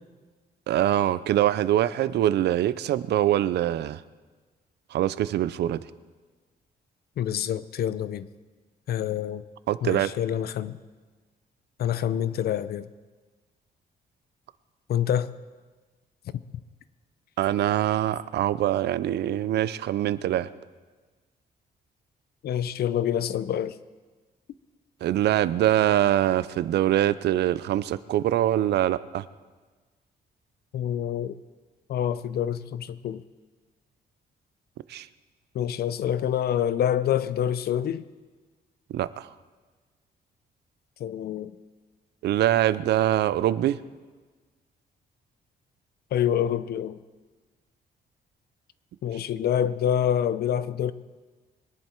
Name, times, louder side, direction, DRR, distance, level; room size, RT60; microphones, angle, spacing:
voice 1, 0.7-4.0 4.9-5.8 9.7-10.1 17.4-20.5 25.0-29.2 34.9-35.1 38.9-39.3 42.2-43.8, right 12 dB, 80° right, 17 dB, 0.5 m, -24 dB
voice 2, 7.2-8.3 8.9-9.4 9.8-10.8 11.8-12.9 14.9-15.3 22.4-23.8 30.7-31.4 31.9-33.2 35.5-38.0 41.0-41.5 46.1-47.0 49.0-50.9, left 10 dB, 65° left, 15 dB, 0.6 m, -26 dB
23.0 x 10.5 x 4.5 m, 1.4 s
cardioid pair, 140°, 17 cm